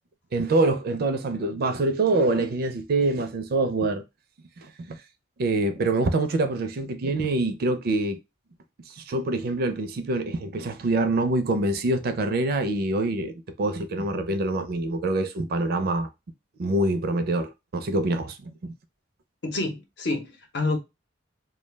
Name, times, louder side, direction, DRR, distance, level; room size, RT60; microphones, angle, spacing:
voice 1, 0.3-4.0 4.6-5.0 5.4-8.2 8.9-16.1 16.6-18.7, right 2 dB, 55° right, 0.4 m, -25 dB
voice 2, 19.4-20.8, left 2 dB, 65° left, 0.8 m, -28 dB
2.2 x 2.1 x 3.2 m
head